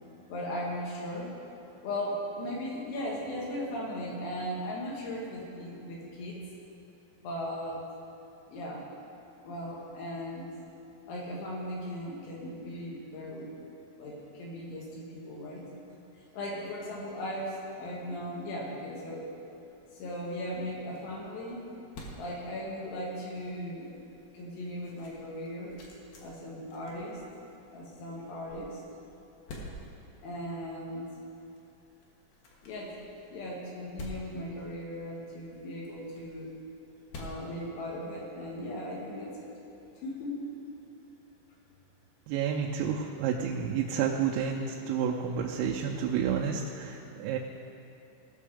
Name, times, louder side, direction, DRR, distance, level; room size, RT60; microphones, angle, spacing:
voice 1, 0.3-1.4 1.8-6.4 7.2-7.8 8.5-8.8 9.4-10.5 11.1-13.5 14.0-15.6 16.1-19.3 19.9-21.7 22.2-23.9 24.3-25.7 26.2-27.2 27.7-28.8 30.2-31.0 32.6-32.9 33.3-36.5 37.2-40.3, equal, 90° left, -4 dB, 4.7 m, -37 dB
sound 1, 19.7-38.4, left 1 dB, 60° left, 2.7 m, -51 dB
voice 2, 42.3-47.4, right 7 dB, 90° right, -2 dB, 3.3 m, -30 dB
19.0 x 6.5 x 4.9 m, 2.9 s
omnidirectional pair, 5.8 m